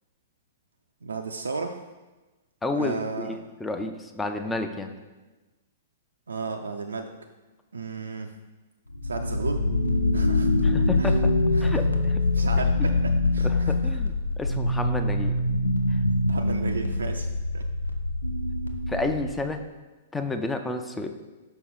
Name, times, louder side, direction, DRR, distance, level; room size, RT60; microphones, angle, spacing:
voice 1, 1.0-1.8 2.7-3.4 6.3-7.1 7.7-8.3 9.0-9.6 10.1-10.5 11.0-11.2 11.5-11.8 12.3-12.9 13.3-13.9 16.3-17.3 17.5-17.6, right 4 dB, 75° right, 5 dB, 0.4 m, -33 dB
voice 2, 2.6-4.9 10.6-11.3 11.6-12.2 13.4-15.4 15.9-16.0 18.9-19.6 20.1-21.1, left 2 dB, 10° left, 6 dB, 0.5 m, -31 dB
sound 1, 8.9-19.5, left 2 dB, 85° left, 0.6 m, -24 dB
5.9 x 5.4 x 4.0 m, 1.2 s
figure-of-eight pair, 110°, 0 cm